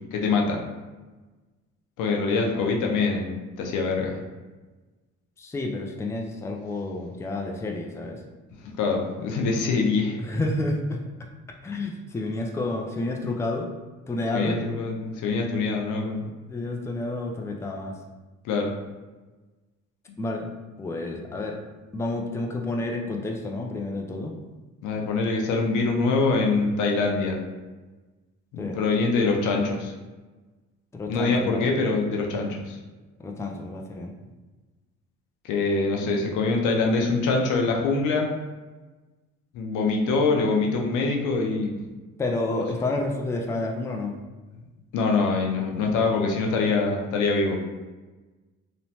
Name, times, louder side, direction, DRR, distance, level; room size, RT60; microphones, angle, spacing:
voice 1, 0.1-0.6 2.0-4.2 8.6-10.2 14.3-16.3 18.4-18.7 24.8-27.4 28.5-29.9 31.1-32.8 35.4-38.3 39.5-41.7 44.9-47.6, left 3 dB, 90° left, 1 dB, 0.5 m, -24 dB
voice 2, 5.4-8.2 10.2-11.0 11.6-13.7 14.1-14.6 16.5-18.0 20.2-20.5 20.8-21.6 21.9-24.4 28.6-28.8 30.9-31.7 33.2-34.1 42.2-44.2, left 2 dB, 10° left, 1 dB, 0.3 m, -30 dB
3.0 x 2.1 x 2.8 m, 1.2 s
cardioid pair, 90°, 30 cm